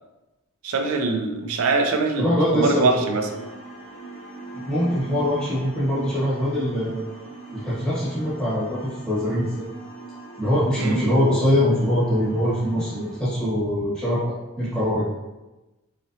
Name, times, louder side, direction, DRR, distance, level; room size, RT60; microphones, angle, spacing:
voice 1, 0.6-3.3 10.8-11.0, right 3 dB, 80° right, 4 dB, 0.5 m, -23 dB
voice 2, 2.2-2.9 4.6-7.0 7.5-9.6 10.4-15.0, equal, 5° left, -10 dB, 1.0 m, -23 dB
sound 1, 3.1-13.2, right 3 dB, 35° left, 0.9 m, -40 dB
3.9 x 3.0 x 2.7 m, 1.1 s
head